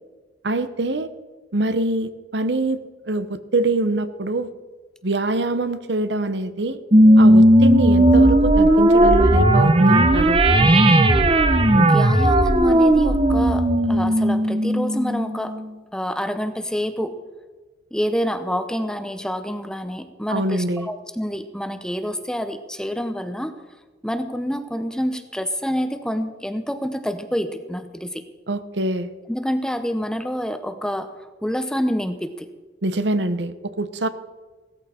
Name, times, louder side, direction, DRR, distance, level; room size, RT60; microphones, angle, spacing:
voice 1, 0.4-1.1 1.5-4.5 5.0-6.8 7.2-10.4 20.3-20.9 28.5-29.1 32.8-34.1, right 2 dB, 70° right, 11 dB, 0.9 m, -24 dB
sound 1, 6.9-15.7, right 1 dB, 30° right, 0.9 m, -15 dB
voice 2, 11.7-15.6 15.9-17.2 17.9-23.6 24.0-28.2 29.3-31.1 31.4-32.5, equal, 5° left, 9 dB, 0.7 m, -27 dB
17.0 x 13.5 x 4.4 m, 1.3 s
head